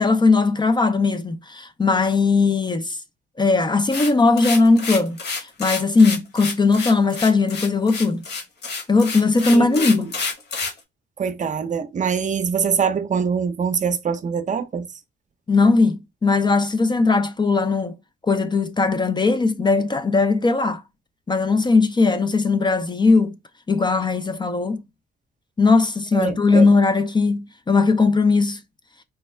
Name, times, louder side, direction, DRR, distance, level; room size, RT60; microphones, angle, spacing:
voice 1, 0.0-3.0 3.4-8.2 8.9-10.1 15.5-17.9 18.3-20.8 21.3-23.3 23.7-24.8 25.6-28.6, left 3 dB, 20° left, 0.4 m, -19 dB
sound 1, 3.9-10.8, left 4 dB, 55° left, 1.6 m, -28 dB
voice 2, 9.5-10.0 11.2-14.9 26.1-26.7, right 6 dB, 40° right, 0.6 m, -24 dB
4.4 x 2.2 x 3.2 m
cardioid pair, 90°, 20 cm